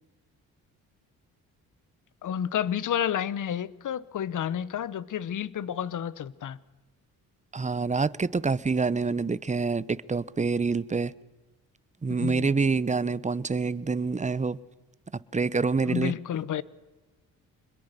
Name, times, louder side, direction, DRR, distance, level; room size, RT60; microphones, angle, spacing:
voice 1, 2.2-6.6 12.2-12.5 15.9-16.6, left 9 dB, 55° left, 1.1 m, -30 dB
voice 2, 7.5-11.1 12.0-14.6 15.3-16.1, right 4 dB, 20° right, 0.9 m, -26 dB
25.5 x 21.5 x 6.7 m
supercardioid pair, 70°, 36 cm